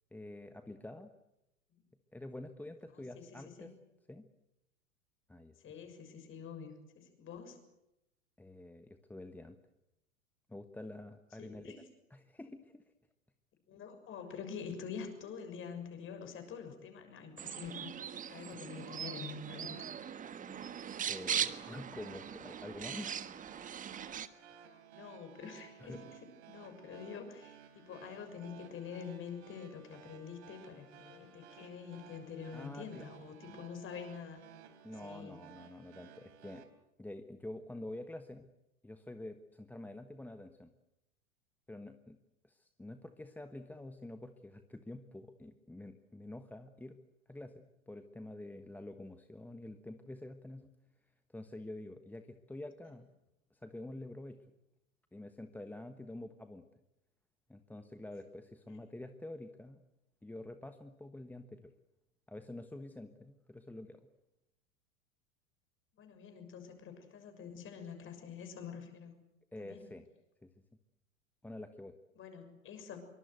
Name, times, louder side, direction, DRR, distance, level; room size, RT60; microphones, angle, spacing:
voice 1, 0.1-1.1 2.1-3.7 4.1-4.3 5.3-5.5 8.4-9.6 10.5-11.7 12.1-12.8 18.3-18.6 21.1-23.3 24.3-24.4 25.8-26.0 32.5-33.1 33.4-33.6 34.8-36.6 37.0-38.5 38.8-40.7 41.7-42.2 42.4-47.0 47.3-50.7 51.3-53.1 53.5-54.4 55.1-56.6 57.5-59.8 60.2-61.7 62.3-64.0 69.5-70.0 70.4-70.5 71.4-71.9, left 1 dB, 5° left, 8 dB, 1.2 m, -47 dB
voice 2, 2.9-3.7 5.6-7.6 11.4-11.8 13.7-17.9 18.3-19.9 24.9-26.0 26.5-34.5 35.0-35.4 58.7-58.8 66.0-69.1 69.6-69.9 72.2-73.0, left 6 dB, 30° left, 7 dB, 6.6 m, -46 dB
sound 1, 17.4-24.3, right 8 dB, 20° right, 1.3 m, -40 dB
sound 2, 20.6-36.6, right 9 dB, 55° right, 3.9 m, -57 dB
26.0 x 24.0 x 8.1 m, 0.90 s
figure-of-eight pair, 90°, 40 cm